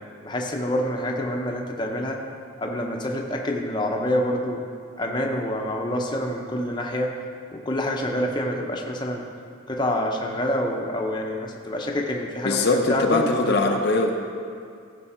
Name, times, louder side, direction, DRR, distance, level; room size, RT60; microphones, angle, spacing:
voice 1, 0.2-2.2 2.6-4.6 5.0-7.2 7.5-9.2 9.7-13.8, left 1 dB, 20° left, 1 dB, 0.7 m, -27 dB
voice 2, 12.4-14.1, left 3 dB, 55° left, 3 dB, 0.6 m, -21 dB
15.0 x 5.5 x 4.3 m, 2.3 s
head